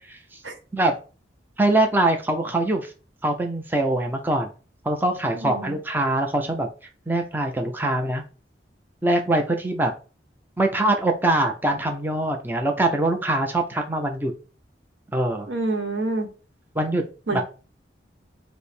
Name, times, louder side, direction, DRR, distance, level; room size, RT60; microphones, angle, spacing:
voice 1, 1.6-2.9 3.2-4.5 4.8-6.7 7.1-8.2 9.0-9.9 10.6-14.3 15.1-15.5 16.8-17.0 17.3-17.4, right 2 dB, 10° right, 3 dB, 0.5 m, -23 dB
voice 2, 5.3-5.8 15.5-16.3 17.3-17.4, right 2 dB, 85° right, 5 dB, 1.0 m, -27 dB
5.1 x 2.0 x 4.2 m, 0.36 s
head